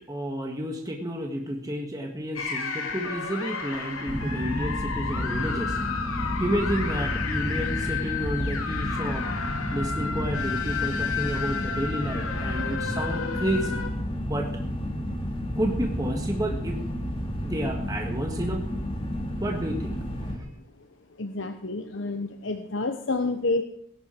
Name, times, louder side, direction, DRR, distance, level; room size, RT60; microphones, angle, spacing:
voice 1, 0.1-5.8 6.2-9.3 9.7-13.8 14.2-14.5 15.5-16.8 17.4-18.6 19.4-20.5, equal, 15° right, 2 dB, 1.6 m, -31 dB
sound 1, 2.3-13.9, left 6 dB, 85° left, 2.4 m, -32 dB
sound 2, 4.1-20.4, equal, 25° left, 2.2 m, -31 dB
voice 2, 21.2-23.6, left 3 dB, 65° left, 6 dB, 1.0 m, -29 dB
19.5 x 11.0 x 4.5 m, 0.71 s
head